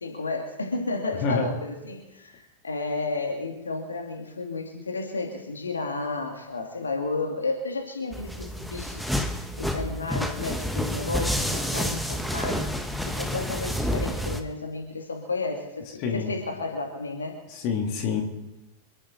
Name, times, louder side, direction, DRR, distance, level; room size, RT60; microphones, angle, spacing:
voice 1, 0.0-12.7 13.1-17.4, left 3 dB, 75° left, 2 dB, 2.2 m, -32 dB
sound 1, 8.1-14.4, equal, ahead, 1.5 m, -29 dB
voice 2, 17.5-18.2, left 5 dB, 40° left, 2 dB, 2.9 m, -26 dB
26.5 x 11.5 x 4.1 m, 0.98 s
figure-of-eight pair, 90°, 0 cm